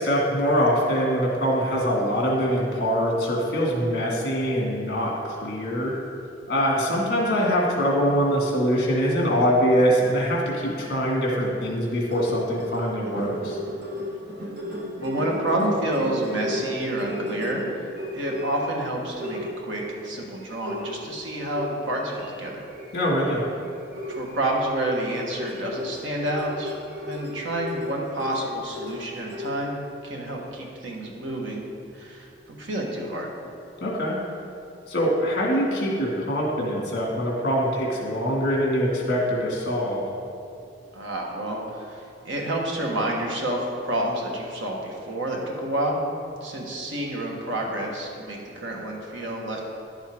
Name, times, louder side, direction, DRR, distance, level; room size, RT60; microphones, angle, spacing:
voice 1, 0.0-5.9 6.5-13.6 22.9-23.4 33.8-34.2 34.9-40.0, equal, 55° left, -3 dB, 2.0 m, -23 dB
sound 1, 11.8-18.7 19.2-19.9 20.4-22.3 22.7-23.0 23.3-23.5 23.9-29.6, left 1 dB, 50° right, 1.3 m, -35 dB
voice 2, 15.0-17.6 18.1-22.6 24.1-31.6 31.9-33.3 40.9-43.6 43.8-46.0 46.4-49.6, right 1 dB, 80° right, -1 dB, 1.5 m, -29 dB
11.0 x 7.2 x 3.6 m, 2.5 s
head